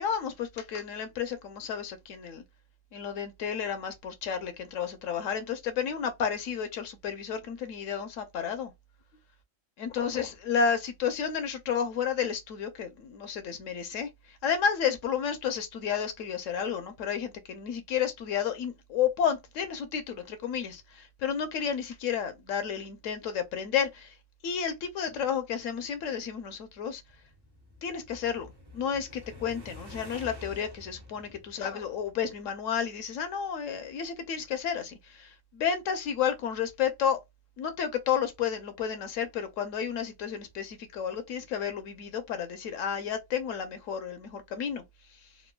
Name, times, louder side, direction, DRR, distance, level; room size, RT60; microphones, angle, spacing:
voice 1, 0.0-2.4 2.9-8.7 9.8-24.1 24.4-27.0 27.8-28.5 28.7-37.2 37.6-44.8, left 7 dB, 80° left, 1.0 m, -31 dB
sound 1, 26.9-32.4, left 2 dB, 30° right, 0.5 m, -48 dB
3.5 x 2.2 x 2.2 m
omnidirectional pair, 1.4 m